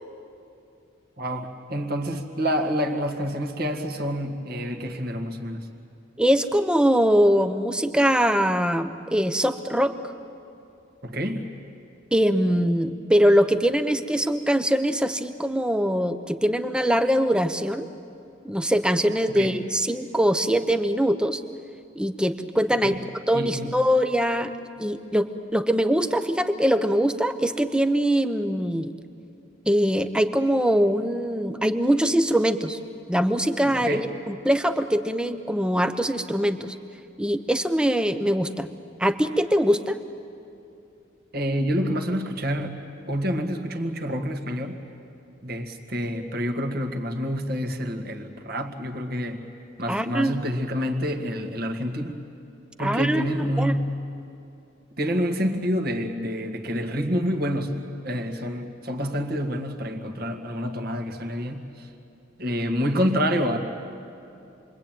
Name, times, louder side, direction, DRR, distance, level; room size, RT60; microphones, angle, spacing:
voice 1, 1.2-5.7 11.0-11.5 19.3-19.6 22.8-23.0 23.3-23.8 33.7-34.1 41.3-44.8 45.4-49.4 49.8-52.2 52.8-54.0 55.0-61.9 62.4-63.6, equal, 50° right, 4 dB, 2.0 m, -28 dB
voice 2, 6.2-10.0 12.1-17.9 18.4-21.4 22.0-22.9 23.3-24.5 24.8-28.9 29.7-32.8 33.1-34.0 34.3-36.7 37.2-38.7 39.0-40.0 49.9-50.4 52.8-53.7, equal, 5° right, 9 dB, 0.8 m, -22 dB
28.0 x 22.5 x 9.2 m, 2.7 s
head